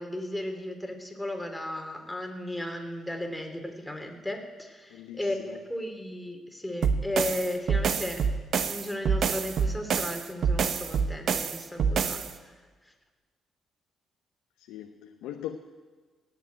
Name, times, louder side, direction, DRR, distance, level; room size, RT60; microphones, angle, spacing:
voice 1, 0.0-8.2 8.6-12.2, left 1 dB, 5° left, 4 dB, 3.0 m, -35 dB
voice 2, 4.9-5.6 14.6-15.6, left 11 dB, 85° left, 5 dB, 0.8 m, -40 dB
sound 1, 6.8-12.3, right 6 dB, 65° right, 1.0 m, -27 dB
17.5 x 7.4 x 9.2 m, 1.4 s
supercardioid pair, 60°, 0 cm